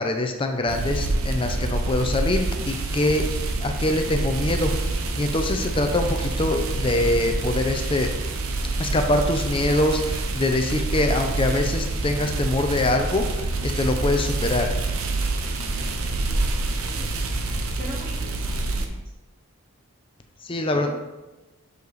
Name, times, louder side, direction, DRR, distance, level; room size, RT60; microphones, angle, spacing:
voice 1, 0.0-3.3 3.6-8.1 8.8-14.7 20.4-20.9, left 2 dB, 25° left, 5 dB, 0.5 m, -24 dB
sound 1, 0.7-18.9, right 2 dB, 70° right, 0.7 m, -27 dB
voice 2, 17.4-19.0 20.7-20.9, equal, 40° right, -4 dB, 1.9 m, -40 dB
6.6 x 5.2 x 4.0 m, 1.1 s
head